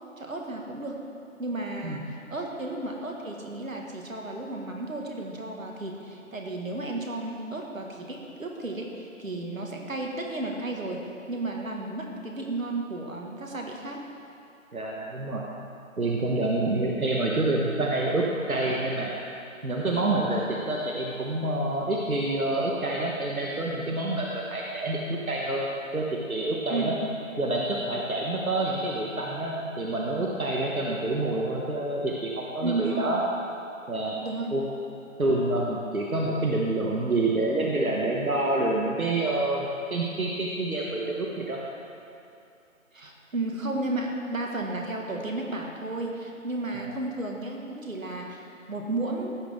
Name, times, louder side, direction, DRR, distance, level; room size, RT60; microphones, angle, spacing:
voice 1, 0.2-1.0 1.4-14.0 26.7-27.0 32.6-33.1 34.2-34.5 42.9-49.3, right 2 dB, 70° right, 1 dB, 1.8 m, -33 dB
voice 2, 14.7-15.4 16.0-19.1 19.6-25.7 25.9-26.9 27.4-33.2 33.9-34.1 34.5-34.6 35.2-41.6 46.8-47.0, right 2 dB, 90° right, -2 dB, 1.3 m, -27 dB
16.0 x 6.2 x 3.6 m, 2.6 s
figure-of-eight pair, 160°, 41 cm